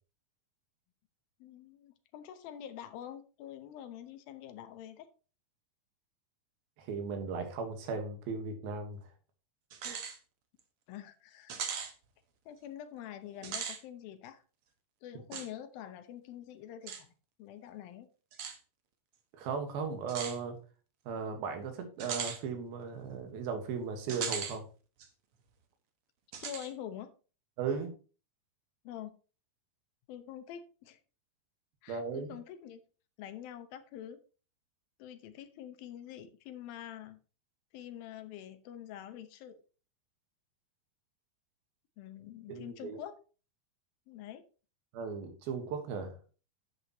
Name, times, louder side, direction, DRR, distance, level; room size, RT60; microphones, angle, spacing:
voice 1, 1.4-5.1 10.9-11.6 12.5-14.4 15.0-17.1 17.4-18.1 26.4-27.1 28.8-29.2 30.1-31.0 31.8-32.8 33.2-34.2 35.0-37.2 37.7-39.6 42.0-43.2 44.1-44.4, left 10 dB, 80° left, 10 dB, 2.7 m, -46 dB
voice 2, 6.8-9.0 9.8-10.0 19.3-20.6 21.1-24.6 27.6-27.9 31.9-32.3 42.5-43.0 44.9-46.2, right 5 dB, 85° right, 6 dB, 3.3 m, -37 dB
sound 1, 9.7-10.2 10.6-10.7 11.5-11.9 13.3-13.8 15.3-15.5 16.9-17.0 18.3-18.6 20.1-20.4 22.0-22.4 24.1-24.6 25.0-25.1 26.3-26.7, right 7 dB, 60° right, 1.5 m, -38 dB
11.0 x 8.2 x 3.0 m, 0.35 s
omnidirectional pair, 4.2 m